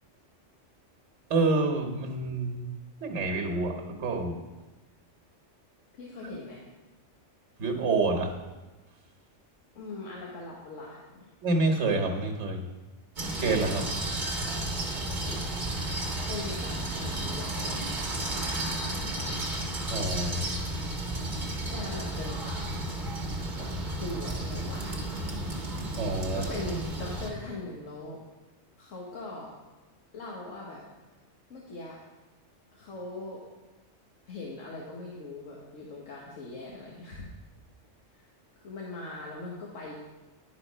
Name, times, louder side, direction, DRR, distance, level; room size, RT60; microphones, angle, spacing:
voice 1, 1.3-2.6 3.0-4.4 7.6-8.3 11.4-12.7 13.4-13.9 19.9-20.4 26.0-26.4, right 3 dB, 65° right, 3 dB, 1.4 m, -27 dB
voice 2, 6.0-6.6 9.7-11.3 16.1-17.9 18.8-19.4 20.3-20.5 21.7-22.7 23.5-25.3 26.3-28.2 28.8-29.5 30.1-30.8 31.5-32.0 32.7-33.4 34.2-37.3 38.1-38.2 38.6-39.9, left 2 dB, 80° left, -4 dB, 1.5 m, -41 dB
sound 1, 13.2-27.3, right 1 dB, 40° right, 1.2 m, -33 dB
10.5 x 4.2 x 5.5 m, 1.2 s
omnidirectional pair, 1.3 m